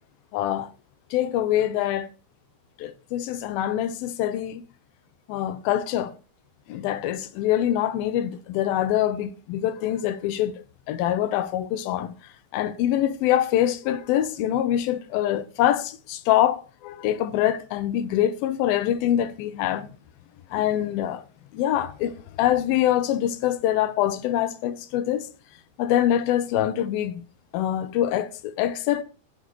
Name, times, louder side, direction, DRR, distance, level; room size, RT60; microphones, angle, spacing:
voice 1, 0.3-0.7 1.1-2.1 2.8-4.6 5.3-6.1 6.7-12.1 12.5-19.9 20.5-21.2 21.5-25.3 25.8-27.2 27.5-29.0, left 12 dB, 80° left, 2.5 m, -24 dB
17.0 x 7.3 x 3.0 m
omnidirectional pair, 4.4 m